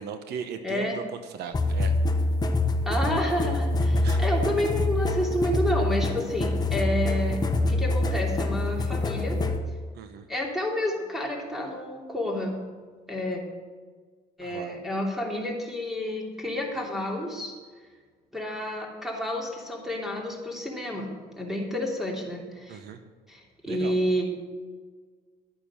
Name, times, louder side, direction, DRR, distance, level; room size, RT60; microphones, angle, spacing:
voice 1, 0.0-1.9 4.0-4.2 9.9-10.3 14.4-14.8 22.7-23.0 23.7-24.0, right 7 dB, 75° right, 8 dB, 1.0 m, -38 dB
voice 2, 0.6-1.0 2.8-9.4 10.3-12.6 13.1-13.4 14.4-17.5 18.3-22.8 23.3-24.2, left 1 dB, ahead, -1 dB, 3.1 m, -30 dB
sound 1, 1.5-9.6, left 2 dB, 25° left, 1.2 m, -25 dB
12.0 x 8.9 x 6.4 m, 1.5 s
cardioid pair, 110°, 17 cm